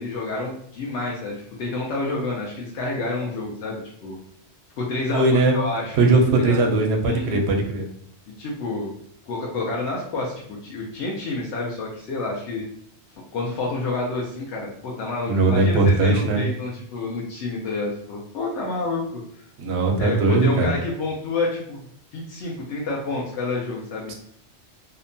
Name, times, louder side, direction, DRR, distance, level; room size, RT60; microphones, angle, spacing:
voice 1, 0.0-4.2 4.8-6.0 6.4-6.7 7.0-7.4 8.4-8.9 9.3-12.6 13.3-19.2 20.0-21.8 22.1-24.1, left 3 dB, 90° left, -3 dB, 0.9 m, -29 dB
voice 2, 5.1-5.5 6.0-7.9 15.3-16.4 19.6-20.7 24.1-24.2, right 3 dB, 75° right, 3 dB, 0.8 m, -19 dB
2.7 x 2.1 x 2.5 m, 0.67 s
omnidirectional pair, 1.1 m